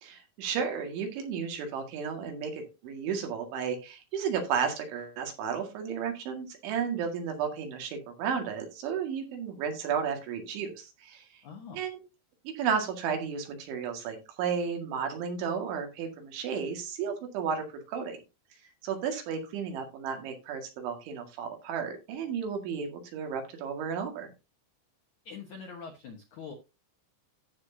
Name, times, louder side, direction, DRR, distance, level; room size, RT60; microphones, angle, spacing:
voice 1, 0.0-11.2 11.7-12.0 12.5-18.2 18.8-24.3, right 6 dB, 75° right, 4 dB, 4.4 m, -33 dB
voice 2, 11.4-11.8 25.2-26.5, left 5 dB, 80° left, 4 dB, 1.7 m, -43 dB
15.0 x 6.4 x 2.8 m, 0.27 s
omnidirectional pair, 5.5 m